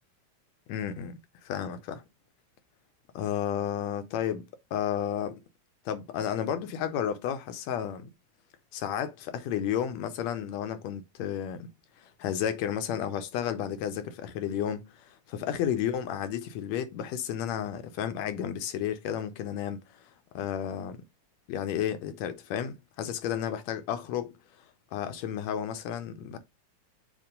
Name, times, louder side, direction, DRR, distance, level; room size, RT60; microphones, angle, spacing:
voice 1, 0.7-2.0 3.2-5.4 5.9-8.1 8.7-11.7 12.0-20.1 20.4-21.0 21.5-24.4 24.9-26.4, left 9 dB, 80° left, 1.7 m, -32 dB
7.2 x 2.5 x 5.1 m
omnidirectional pair, 3.3 m